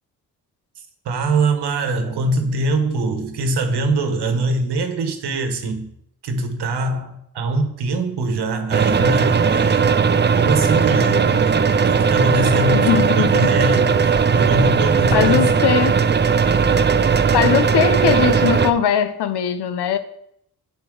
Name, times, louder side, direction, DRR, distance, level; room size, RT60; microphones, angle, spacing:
voice 1, 1.0-5.9 6.2-9.9 10.3-15.5, right 2 dB, 75° right, 1.3 m, -23 dB
sound 1, 8.7-18.7, right 6 dB, 25° right, 0.5 m, -17 dB
voice 2, 12.7-13.5 15.1-15.9 17.3-20.0, left 8 dB, 80° left, 0.8 m, -20 dB
9.7 x 4.0 x 3.9 m
supercardioid pair, 50°, 40 cm